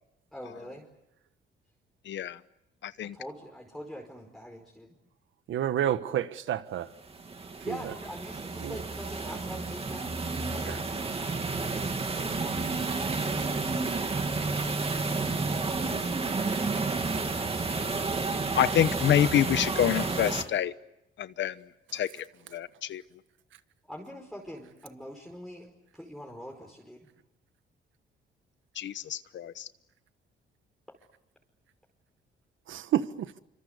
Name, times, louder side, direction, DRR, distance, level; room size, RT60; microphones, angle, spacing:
voice 1, 0.3-0.9 3.0-5.0 7.6-12.1 23.9-25.7 25.9-27.1, equal, ahead, 5.0 m, -44 dB
voice 2, 2.1-2.4 2.8-3.2 18.6-20.7 21.2-21.5 21.9-22.2 22.5-23.0 28.8-29.7, left 11 dB, 65° left, 1.0 m, -27 dB
voice 3, 5.5-6.9 7.7-7.8 8.6-8.7 10.7-10.8 32.7-33.1, right 11 dB, 75° right, 1.4 m, -29 dB
sound 1, 7.1-20.4, right 3 dB, 30° right, 2.7 m, -31 dB
26.0 x 25.5 x 8.2 m
cardioid pair, 90°, 20 cm